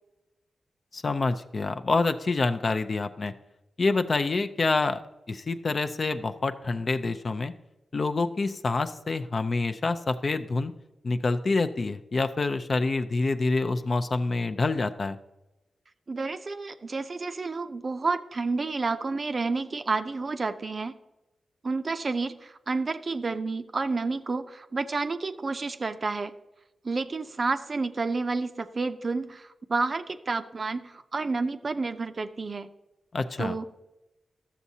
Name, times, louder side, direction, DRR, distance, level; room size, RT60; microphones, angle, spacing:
voice 1, 0.9-3.3 3.8-5.0 5.3-7.5 7.9-10.7 11.0-15.2 33.1-33.6, left 3 dB, 50° left, 8 dB, 0.5 m, -27 dB
voice 2, 16.1-21.0 21.6-26.3 26.8-32.7 33.4-33.7, right 3 dB, 45° right, 10 dB, 0.5 m, -30 dB
12.5 x 7.1 x 2.7 m, 1.0 s
cardioid pair, 75°, 0 cm